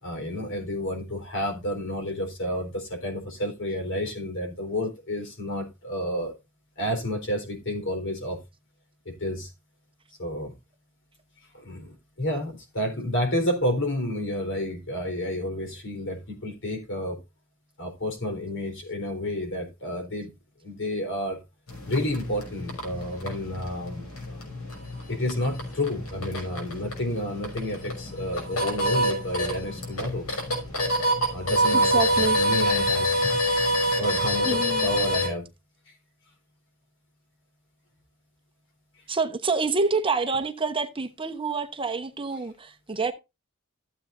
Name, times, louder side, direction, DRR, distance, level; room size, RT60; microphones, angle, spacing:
voice 1, 0.0-6.3 6.8-8.4 9.1-9.5 10.2-10.5 11.5-17.2 17.8-20.3 20.6-21.4 21.9-24.4 25.1-30.3 31.3-33.3 34.0-35.5, left 1 dB, 60° left, 4.1 m, -30 dB
sound 1, 21.7-35.3, equal, 85° left, 5.8 m, -27 dB
voice 2, 31.9-32.4 34.4-34.9 39.1-43.1, right 4 dB, 25° right, 1.0 m, -27 dB
15.0 x 7.9 x 2.6 m
head